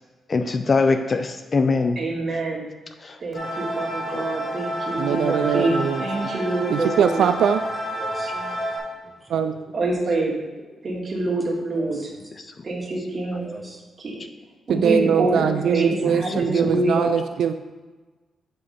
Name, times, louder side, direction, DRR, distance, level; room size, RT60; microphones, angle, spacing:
voice 1, 0.3-2.0 3.0-3.2 4.1-4.3 12.4-12.5 16.0-16.8, left 4 dB, 35° left, 8 dB, 0.4 m, -23 dB
voice 2, 2.0-2.7 3.2-7.3 9.7-10.4 10.8-12.0 12.6-13.5 14.0-14.2 14.7-17.1, right 2 dB, 40° right, -3 dB, 2.0 m, -26 dB
sound 1, 3.3-8.8, equal, 55° left, 2.6 m, -29 dB
voice 3, 5.0-6.0 6.7-7.6 9.3-9.6 14.7-17.5, right 8 dB, 80° right, 9 dB, 0.3 m, -21 dB
voice 4, 8.0-8.7 9.0-9.6 11.7-12.3 12.7-12.9 13.3-13.8, right 1 dB, 5° right, -1 dB, 1.5 m, -41 dB
8.0 x 5.3 x 4.2 m, 1.2 s
cardioid pair, 105°, 0 cm